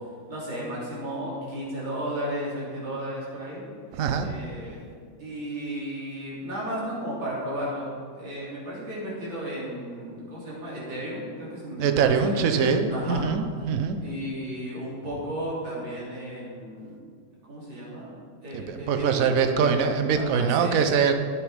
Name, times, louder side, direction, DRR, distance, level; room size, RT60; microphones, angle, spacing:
voice 1, 0.3-3.6 4.2-4.9 5.2-7.9 8.1-13.2 14.0-16.9 17.5-18.1 18.4-20.7, equal, 70° right, -7 dB, 4.2 m, -34 dB
voice 2, 3.9-4.3 11.8-14.0 18.5-21.1, right 6 dB, 55° right, 7 dB, 1.0 m, -23 dB
12.0 x 8.2 x 5.1 m, 2.1 s
omnidirectional pair, 2.2 m